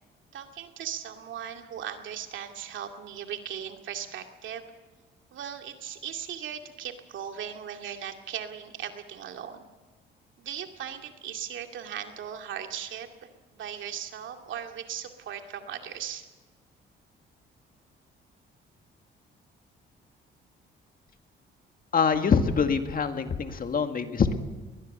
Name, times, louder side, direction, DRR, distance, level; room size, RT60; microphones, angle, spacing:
voice 1, 0.3-4.7 5.3-9.7 10.4-16.3, right 9 dB, 75° right, 5 dB, 2.4 m, -38 dB
voice 2, 21.9-24.3, left 6 dB, 45° left, 7 dB, 2.0 m, -24 dB
21.5 x 20.0 x 6.8 m, 1.3 s
cardioid pair, 90°, 20 cm